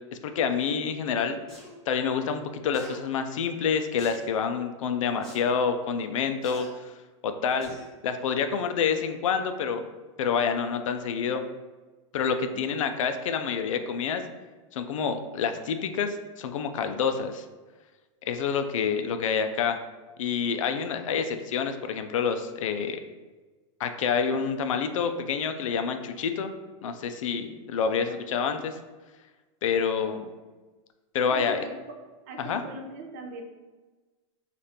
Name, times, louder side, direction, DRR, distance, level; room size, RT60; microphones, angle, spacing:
voice 1, 0.1-1.4 1.9-6.9 7.2-7.7 8.0-9.8 10.2-11.4 12.1-14.2 14.7-17.4 18.3-19.8 20.2-23.0 23.8-26.5 26.8-28.8 29.6-30.2 31.1-31.6 32.4-32.6, left 6 dB, 80° left, 7 dB, 0.4 m, -28 dB
sound 1, 1.5-1.7 2.7-3.0 4.0-4.3 5.2-5.4 6.4-6.7 7.6-7.9 8.4-8.5, equal, 5° left, 0.7 m, -46 dB
voice 2, 29.7-30.4 31.3-32.0 32.3-33.4, right 1 dB, 30° right, 3 dB, 0.4 m, -41 dB
5.0 x 2.5 x 2.8 m, 1.2 s
supercardioid pair, 180°, 16 cm